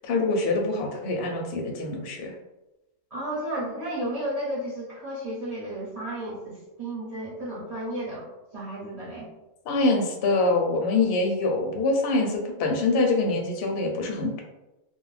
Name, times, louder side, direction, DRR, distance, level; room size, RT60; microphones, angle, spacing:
voice 1, 0.0-2.3 9.7-14.4, left 3 dB, 65° left, 1 dB, 0.7 m, -25 dB
voice 2, 3.1-8.3 8.5-9.3, right 1 dB, 35° right, -8 dB, 0.8 m, -33 dB
2.3 x 2.1 x 3.2 m, 0.98 s
omnidirectional pair, 1.3 m